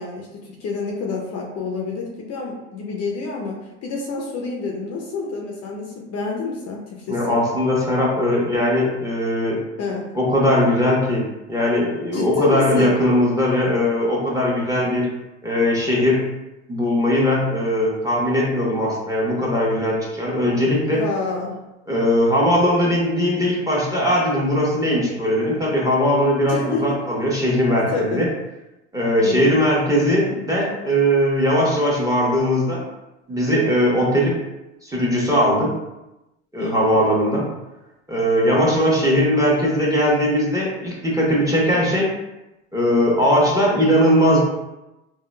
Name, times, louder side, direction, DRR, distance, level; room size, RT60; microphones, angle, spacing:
voice 1, 0.0-7.4 9.8-10.1 12.1-13.0 20.9-21.6 26.5-27.0 27.7-28.2 29.2-29.6 36.6-37.0, left 4 dB, 40° left, -1 dB, 0.6 m, -28 dB
voice 2, 7.1-9.6 10.1-15.1 15.4-16.2 16.7-21.0 21.9-28.3 28.9-32.8 33.3-34.4 34.8-35.7 36.5-37.4 38.1-42.1 42.7-44.4, equal, 10° right, -5 dB, 0.9 m, -19 dB
3.7 x 2.2 x 2.2 m, 0.98 s
hypercardioid pair, 85°, 37 cm